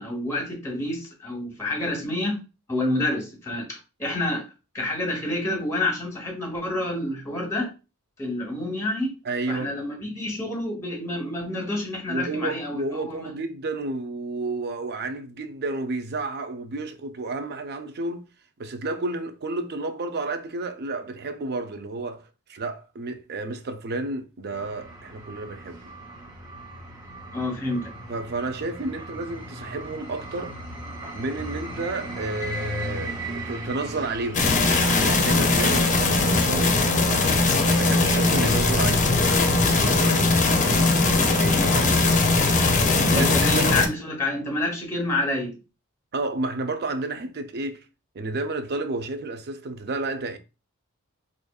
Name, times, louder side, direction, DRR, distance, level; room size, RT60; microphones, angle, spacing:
voice 1, 0.0-2.4 2.7-4.5 4.7-7.7 8.2-9.2 9.5-13.3 27.3-27.9 40.7-40.9 43.0-45.6, left 1 dB, 15° left, 1.0 m, -28 dB
voice 2, 9.3-9.8 12.1-18.3 18.6-25.9 28.1-30.6 31.1-34.5 35.0-36.8 37.6-39.1 39.8-42.2 43.0-43.9 46.1-47.8 48.1-50.4, right 2 dB, 50° right, 0.5 m, -31 dB
sound 1, 24.5-39.7, right 1 dB, 20° right, 1.1 m, -38 dB
sound 2, 34.3-43.9, left 3 dB, 35° left, 0.6 m, -20 dB
4.9 x 2.5 x 2.3 m
head